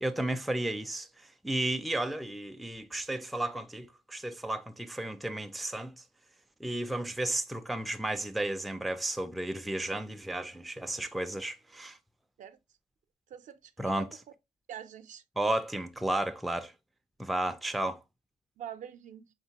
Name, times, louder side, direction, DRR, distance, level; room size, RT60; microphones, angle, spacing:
voice 1, 0.0-1.1 1.4-6.0 6.6-12.0 13.8-14.1 15.4-16.7 17.2-18.0, right 1 dB, ahead, 0.3 m, -33 dB
voice 2, 13.3-14.1 14.7-15.2 18.6-19.3, right 9 dB, 65° right, 0.5 m, -45 dB
3.7 x 3.6 x 2.8 m
cardioid pair, 130°, 14 cm